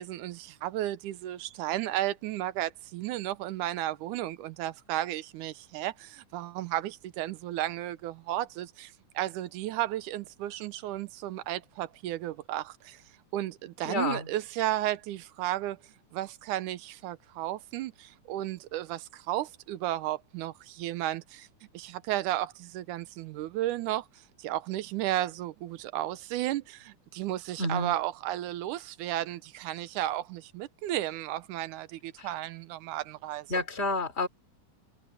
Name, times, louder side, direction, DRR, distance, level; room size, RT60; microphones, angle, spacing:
voice 1, 0.0-13.0 13.3-15.8 16.1-21.5 21.7-24.1 24.4-33.5, right 14 dB, 85° right, 2.3 m, -33 dB
voice 2, 13.8-14.3 27.6-28.0 32.2-32.3 33.5-34.3, left 2 dB, 20° left, 4.1 m, -30 dB
omnidirectional pair, 3.6 m